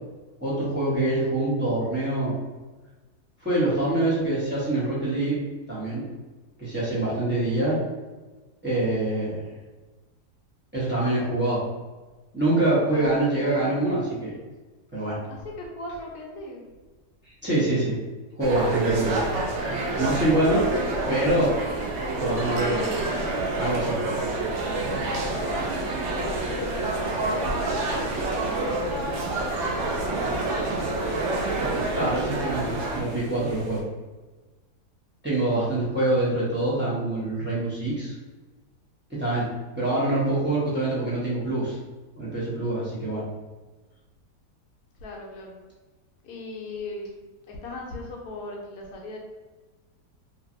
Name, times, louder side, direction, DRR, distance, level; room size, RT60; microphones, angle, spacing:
voice 1, 0.4-2.3 3.4-5.4 5.7-6.0 6.6-7.8 8.6-9.3 10.7-11.6 12.3-14.4 14.9-15.1 17.4-17.9 18.4-19.2 20.0-20.6 21.1-21.5 22.2-22.8 23.6-24.0 31.9-33.8 35.2-38.1 39.2-39.4 39.8-41.8 42.2-43.2, right 2 dB, 10° right, -9 dB, 0.6 m, -25 dB
voice 2, 12.9-13.9 15.3-16.7 25.3-25.9 26.5-31.4 45.0-45.6 46.2-47.1 47.5-49.2, left 1 dB, 70° left, -1 dB, 1.0 m, -39 dB
sound 1, 18.4-33.0, right 2 dB, 75° right, 0.6 m, -27 dB
sound 2, 24.3-33.8, left 1 dB, 90° right, 1.3 m, -41 dB
2.9 x 2.6 x 2.5 m, 1.2 s
omnidirectional pair, 1.7 m